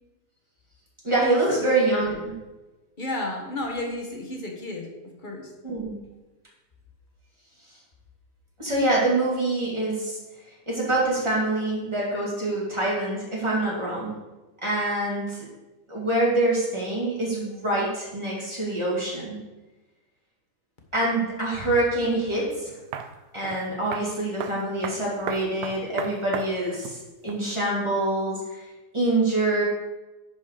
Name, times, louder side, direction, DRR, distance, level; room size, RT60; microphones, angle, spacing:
voice 1, 1.0-2.3 5.6-6.0 8.6-10.2 10.7-14.2 14.6-15.5 15.9-19.4 20.9-22.7 23.3-27.0 27.2-28.6 28.9-29.6, right 2 dB, 15° right, -6 dB, 2.6 m, -25 dB
voice 2, 3.0-5.5, left 2 dB, 30° left, 1 dB, 1.2 m, -32 dB
sound 1, 22.9-23.1 23.4-23.6 23.9-24.1 24.4-24.6 24.8-27.0 27.3-27.4, right 8 dB, 80° right, 1.3 m, -33 dB
10.5 x 4.9 x 5.0 m, 1.1 s
omnidirectional pair, 1.8 m